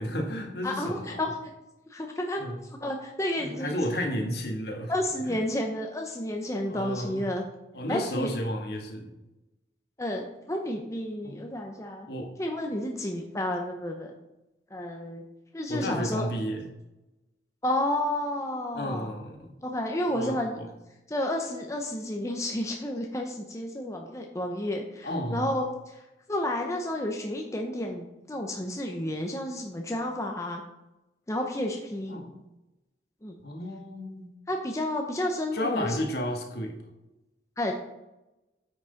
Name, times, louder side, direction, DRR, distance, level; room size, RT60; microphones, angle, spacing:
voice 1, 0.0-1.2 2.4-2.6 3.4-4.9 5.2-5.4 6.7-7.2 7.7-9.1 11.2-11.5 12.1-12.3 15.7-16.7 18.7-19.5 20.1-20.7 25.0-25.5 32.1-32.3 33.4-34.3 35.5-36.8, equal, 60° left, 3 dB, 1.5 m, -32 dB
voice 2, 0.6-1.4 1.9-2.4 2.8-3.8 4.9-7.4 7.9-8.3 10.0-12.1 12.4-14.1 14.7-15.2 15.5-16.3 17.6-19.1 19.6-20.5 21.1-30.6 31.3-32.2 33.2-33.4 34.5-36.0 37.6-37.7, left 1 dB, 15° left, 2 dB, 0.7 m, -31 dB
9.3 x 6.1 x 3.9 m, 0.96 s
head